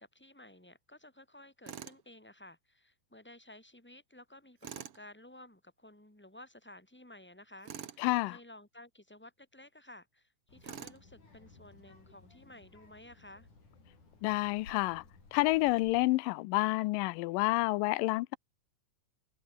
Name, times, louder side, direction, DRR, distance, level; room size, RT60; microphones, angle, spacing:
voice 1, 0.0-13.5, left 1 dB, 5° left, 5.3 m, -54 dB
Tools, 1.7-2.0 4.6-5.0 7.6-8.0 10.6-11.0, right 9 dB, 50° right, 2.0 m, -45 dB
voice 2, 8.0-8.4 14.2-15.0 15.3-18.4, left 20 dB, 90° left, 2.3 m, -29 dB
Child speech kid speaking, 10.5-16.1, left 3 dB, 65° left, 9.1 m, -58 dB
omnidirectional pair, 3.9 m